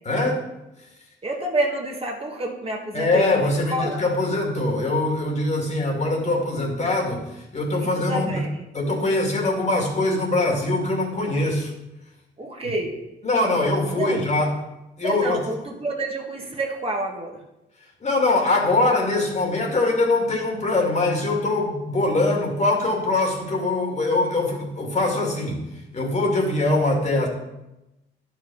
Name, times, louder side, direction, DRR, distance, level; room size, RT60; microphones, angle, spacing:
voice 1, 0.1-0.4 2.9-8.4 8.7-11.7 13.2-14.6 15.0-15.4 18.0-25.6 25.9-27.3, left 2 dB, 35° left, 1 dB, 2.3 m, -22 dB
voice 2, 1.2-4.0 7.8-8.6 12.4-12.9 13.9-14.2 15.0-17.4, right 1 dB, 30° right, 0 dB, 1.6 m, -28 dB
11.0 x 5.0 x 5.6 m, 0.94 s
cardioid pair, 90°, 20 cm